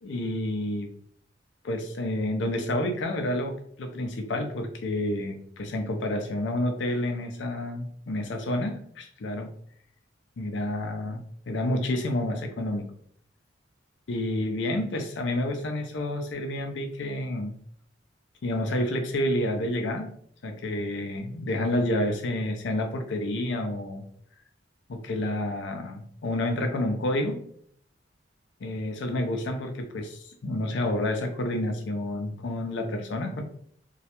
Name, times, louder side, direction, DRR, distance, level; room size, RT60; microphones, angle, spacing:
voice 1, 0.0-0.9 1.6-9.5 10.4-12.9 14.1-17.6 18.4-20.1 20.4-24.0 24.9-27.4 28.6-33.4, left 1 dB, 70° left, 5 dB, 0.5 m, -29 dB
2.3 x 2.1 x 2.8 m, 0.63 s
head